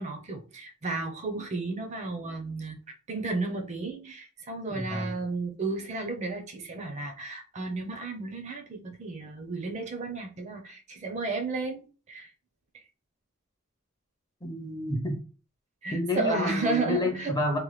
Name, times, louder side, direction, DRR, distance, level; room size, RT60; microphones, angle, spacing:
voice 1, 0.0-2.8 3.1-12.3 12.7-12.8 15.8-17.3, right 3 dB, 35° right, 0.5 m, -33 dB
voice 2, 4.7-5.1 14.4-15.2 15.9-17.6, left 1 dB, 20° left, 0.5 m, -29 dB
3.0 x 2.1 x 3.1 m
head